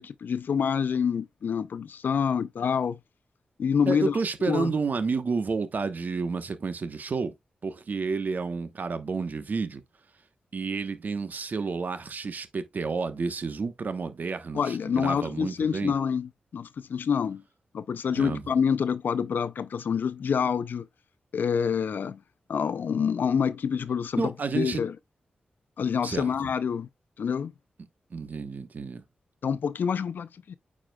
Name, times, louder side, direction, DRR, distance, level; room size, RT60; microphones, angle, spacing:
voice 1, 0.0-3.0 3.6-4.2 4.5-4.7 14.5-17.4 17.7-20.9 21.3-22.2 22.5-24.9 25.8-26.9 27.2-27.5 29.4-30.6, left 7 dB, 75° left, 0.5 m, -27 dB
voice 2, 3.9-7.3 7.6-9.8 10.5-15.9 18.1-18.4 24.2-24.8 26.0-26.3 28.1-29.0, right 4 dB, 60° right, 1.1 m, -30 dB
8.9 x 4.9 x 2.3 m
cardioid pair, 55°, 3 cm